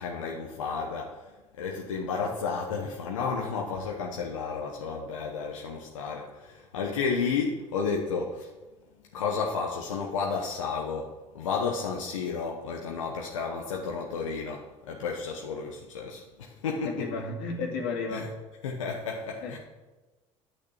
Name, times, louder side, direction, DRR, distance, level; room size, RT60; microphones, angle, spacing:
voice 1, 0.0-8.5 9.0-17.1 18.1-18.3 18.6-19.6, left 5 dB, 90° left, 0 dB, 0.9 m, -32 dB
voice 2, 16.9-18.3 19.4-19.6, left 4 dB, 70° left, 1 dB, 2.2 m, -33 dB
9.0 x 6.5 x 8.1 m, 1.2 s
hypercardioid pair, 70°, 16 cm